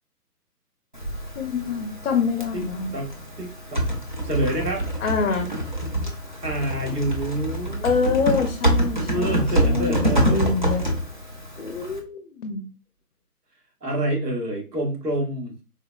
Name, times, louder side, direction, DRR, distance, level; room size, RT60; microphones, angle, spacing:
Typing, 0.9-12.0, right 1 dB, 35° right, 0.4 m, -26 dB
voice 1, 1.4-2.9 5.0-5.5 7.8-10.9 11.6-12.6, left 5 dB, 50° left, 5 dB, 0.5 m, -26 dB
voice 2, 2.9-3.9 4.2-4.8 6.4-7.9 9.0-10.5 13.8-15.6, right 1 dB, 90° right, 0 dB, 1.3 m, -27 dB
3.9 x 2.0 x 2.2 m, 0.33 s
figure-of-eight pair, 145°, 47 cm